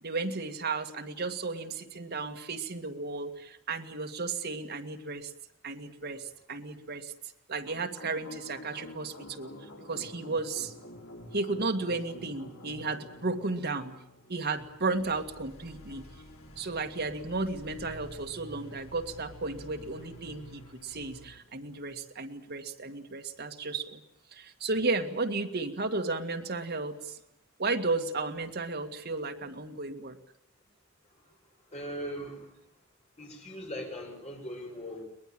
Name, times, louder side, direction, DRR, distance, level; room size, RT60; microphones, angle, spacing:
voice 1, 0.0-5.3 5.6-7.1 7.5-9.5 9.9-10.7 11.3-13.9 14.3-16.1 16.6-24.0 24.3-27.2 27.6-30.2, right 3 dB, 50° right, 5 dB, 2.0 m, -34 dB
sound 1, 7.7-21.4, left 1 dB, 80° left, 3.7 m, -49 dB
voice 2, 31.7-32.7 33.2-35.0, equal, 35° left, 1 dB, 6.5 m, -40 dB
22.5 x 20.5 x 8.9 m, 0.77 s
head